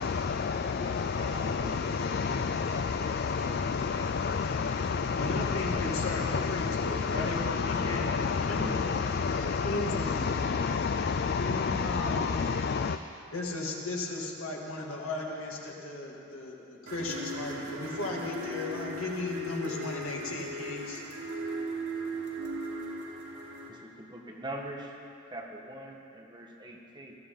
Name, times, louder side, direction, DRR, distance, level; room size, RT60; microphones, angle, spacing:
voice 1, 0.0-13.0, left 5 dB, 45° left, 9 dB, 0.3 m, -30 dB
voice 2, 0.6-2.0 2.3-4.4 23.7-25.0 25.3-27.2, right 1 dB, 20° right, -1 dB, 1.4 m, -44 dB
voice 3, 5.2-7.4 7.7-8.9 9.4-10.4 11.4-12.4 13.3-21.0, left 2 dB, 75° left, -2 dB, 2.3 m, -36 dB
sound 1, 16.9-23.7, right 1 dB, 90° right, 2.6 m, -37 dB
20.0 x 14.0 x 3.9 m, 2.6 s
head